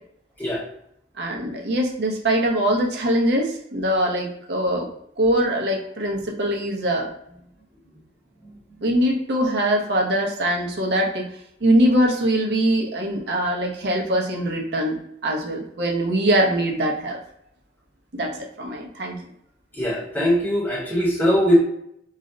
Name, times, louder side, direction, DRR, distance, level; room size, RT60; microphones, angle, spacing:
voice 1, 1.2-4.9 5.2-7.1 8.8-11.3 11.6-15.0 15.2-17.2 18.1-19.2, right 1 dB, 65° right, 1 dB, 0.6 m, -22 dB
voice 2, 19.7-21.6, equal, 10° left, -4 dB, 0.8 m, -20 dB
2.4 x 2.1 x 3.7 m, 0.73 s
head